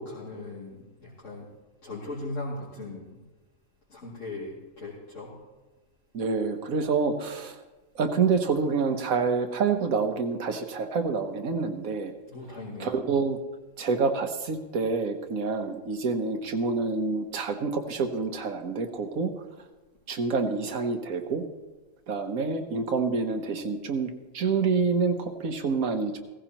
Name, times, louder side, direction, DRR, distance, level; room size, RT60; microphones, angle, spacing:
voice 1, 0.0-1.5 1.8-3.2 3.9-5.3 12.2-12.9, left 2 dB, 65° left, -8 dB, 2.9 m, -38 dB
voice 2, 6.1-7.6 7.9-12.1 12.8-13.4 13.8-19.3 20.1-21.4 22.1-26.2, right 4 dB, 90° right, 6 dB, 1.5 m, -27 dB
16.5 x 15.0 x 3.0 m, 1.2 s
omnidirectional pair, 1.4 m